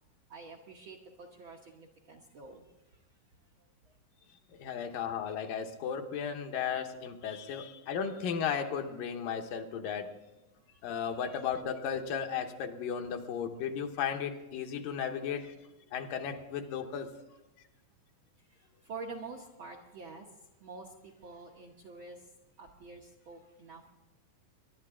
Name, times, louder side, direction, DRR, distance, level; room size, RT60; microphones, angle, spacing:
voice 1, 0.3-2.7 18.6-20.3 20.6-22.2 22.6-23.9, right 4 dB, 65° right, 0 dB, 1.2 m, -47 dB
voice 2, 4.6-10.1 10.8-15.5 15.9-17.1, left 7 dB, 90° left, 4 dB, 2.8 m, -35 dB
22.5 x 11.5 x 3.6 m, 0.99 s
omnidirectional pair, 3.8 m